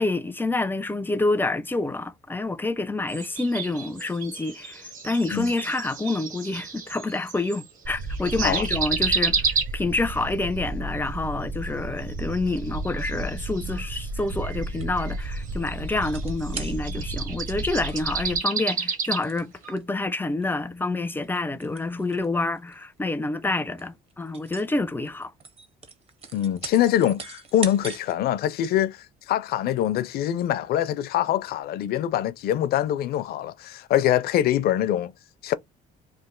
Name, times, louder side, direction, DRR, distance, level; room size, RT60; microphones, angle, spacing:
voice 1, 0.0-9.4 9.7-25.3, left 2 dB, 10° left, 0.4 m, -28 dB
sound 1, 3.1-7.7 8.0-10.1 12.1-19.2 19.6-19.7, right 5 dB, 55° right, 1.4 m, -31 dB
sound 2, 7.8-18.4, right 2 dB, 75° right, 0.8 m, -33 dB
sound 3, 14.2-15.1 16.0-17.2 17.5-17.6 17.9-18.2 19.1-19.8 20.4-20.6 21.1-22.2 22.6-22.8 23.4-23.5 23.8-24.7 25.0-28.2 28.6-28.7, right 5 dB, 35° right, 0.9 m, -40 dB
voice 2, 26.3-29.0 29.3-35.1 35.4-35.5, left 11 dB, 65° left, 0.5 m, -24 dB
3.2 x 2.5 x 3.7 m
cardioid pair, 110°, 17 cm